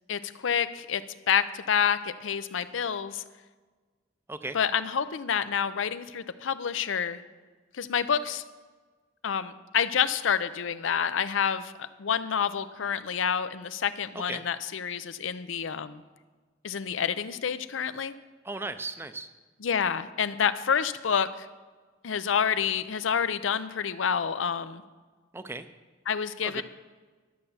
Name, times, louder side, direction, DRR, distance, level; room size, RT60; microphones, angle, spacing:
voice 1, 0.1-1.0 1.3-3.2 4.5-7.2 7.7-8.4 9.2-16.0 16.6-18.1 19.6-21.5 22.0-24.8 26.1-26.6, left 7 dB, 85° left, 13 dB, 0.5 m, -28 dB
voice 2, 18.4-19.3 25.3-25.7 26.4-26.6, right 2 dB, 10° right, 10 dB, 0.5 m, -36 dB
11.5 x 6.7 x 7.1 m, 1.4 s
head